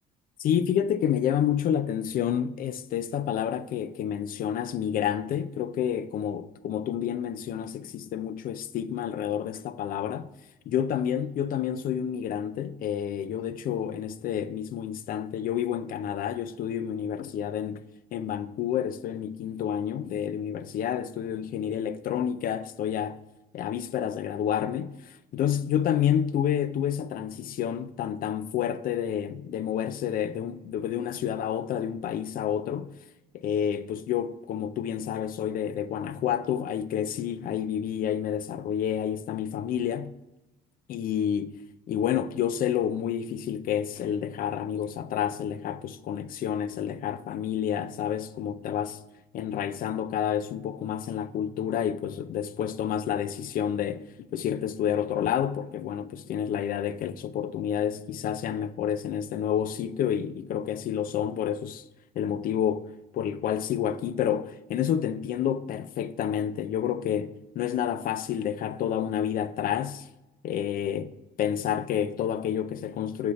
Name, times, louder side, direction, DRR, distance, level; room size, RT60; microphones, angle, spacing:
voice 1, 0.4-10.3 10.7-17.8 18.1-23.2 23.5-33.0 33.3-40.1 40.9-41.5 41.9-49.0 49.3-61.8 62.1-70.1 70.4-71.1 71.4-73.3, left 9 dB, 55° left, 0.5 m, -29 dB
6.3 x 4.1 x 4.1 m
cardioid pair, 110°, 17 cm